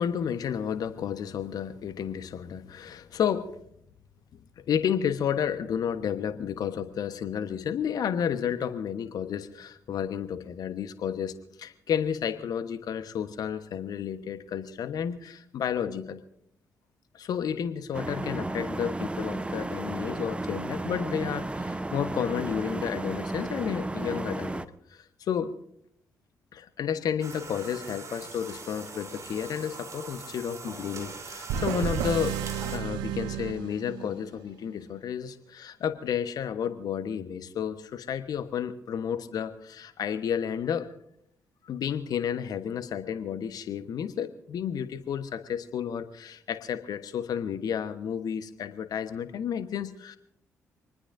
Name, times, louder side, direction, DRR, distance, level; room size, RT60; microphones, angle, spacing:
voice 1, 0.0-3.6 4.3-4.4 4.7-16.2 17.1-24.6 24.9-25.6 26.5-32.4 32.7-40.9 41.6-50.2, left 8 dB, 60° left, 12 dB, 1.2 m, -31 dB
sound 1, 17.9-24.7, right 2 dB, 15° right, 1.0 m, -33 dB
sound 2, 27.2-32.8, right 4 dB, 45° right, 3.6 m, -42 dB
sound 3, 31.5-34.3, right 9 dB, 70° right, 0.9 m, -32 dB
26.0 x 20.0 x 2.7 m, 0.72 s
hypercardioid pair, 40°, 7 cm